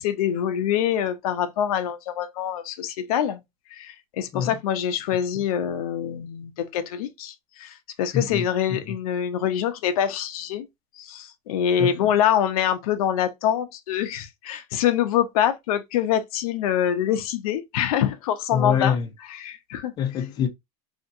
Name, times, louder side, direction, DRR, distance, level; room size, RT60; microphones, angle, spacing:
voice 1, 0.0-3.4 3.7-10.7 11.0-19.0 19.3-19.9, left 10 dB, 90° left, 0.6 m, -25 dB
voice 2, 8.1-8.4 8.7-9.0 11.8-12.1 18.5-19.1 20.0-20.5, left 8 dB, 25° left, 0.5 m, -25 dB
2.8 x 2.6 x 2.6 m
supercardioid pair, 165°, 18 cm